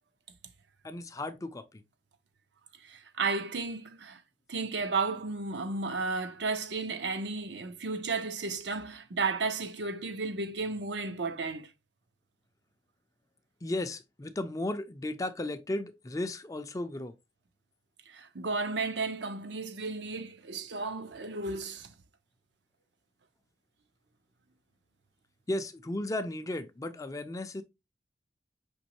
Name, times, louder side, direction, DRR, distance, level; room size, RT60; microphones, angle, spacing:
voice 1, 0.8-1.8 13.6-17.1 25.5-27.6, left 1 dB, 20° left, 0.4 m, -35 dB
voice 2, 2.8-4.2 4.5-11.7 18.1-21.9, right 3 dB, 80° right, 0.7 m, -33 dB
5.2 x 3.0 x 2.9 m
head